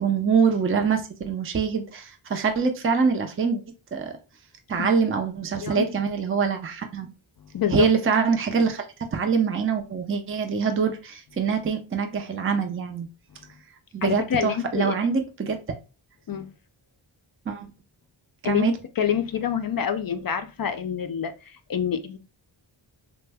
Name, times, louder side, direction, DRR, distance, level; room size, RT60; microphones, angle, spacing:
voice 1, 0.0-3.6 3.9-4.2 4.7-7.1 7.7-13.1 13.9-15.6 17.5-17.7 18.4-18.7, right 5 dB, 25° right, 0.5 m, -24 dB
voice 2, 7.5-7.9 14.0-15.0 16.3-16.5 18.4-18.7 19.0-21.3 21.7-22.2, left 8 dB, 50° left, 0.4 m, -26 dB
3.2 x 2.1 x 3.4 m
cardioid pair, 60°, 48 cm